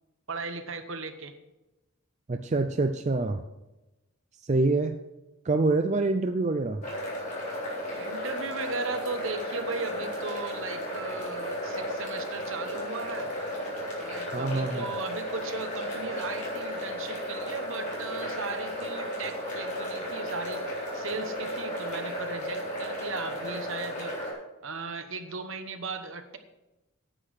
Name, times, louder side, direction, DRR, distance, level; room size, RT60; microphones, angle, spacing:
voice 1, 0.3-1.3 8.0-13.3 14.0-20.6 20.9-24.1 24.6-26.4, right 3 dB, 60° right, 8 dB, 1.1 m, -37 dB
voice 2, 2.3-3.4 4.4-5.0 5.4-6.8 14.3-14.9, right 3 dB, 30° right, 7 dB, 0.4 m, -26 dB
sound 1, 6.8-24.3, equal, 35° left, 3.8 m, -34 dB
10.0 x 8.4 x 6.5 m, 1.0 s
head